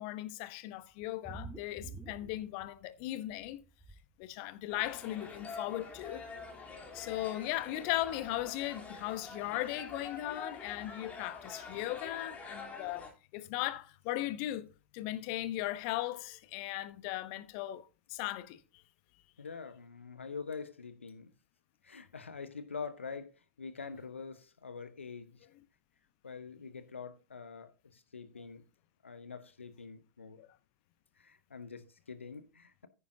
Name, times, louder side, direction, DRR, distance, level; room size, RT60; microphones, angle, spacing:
voice 1, 0.0-3.6 4.2-6.2 6.9-14.7 14.9-18.6 30.4-30.5, left 15 dB, 50° left, 0.9 m, -37 dB
sound 1, 1.0-3.0 3.3-4.0 5.0-5.1 5.4-5.5 5.8-5.9, right 3 dB, 5° left, 2.1 m, -47 dB
sound 2, 4.7-13.1, left 4 dB, 20° left, 3.2 m, -46 dB
voice 2, 19.4-21.3 21.8-25.4 26.2-28.6 29.0-30.4 31.2-32.9, left 5 dB, 80° left, 1.1 m, -45 dB
10.5 x 9.8 x 2.7 m
figure-of-eight pair, 85°, 7 cm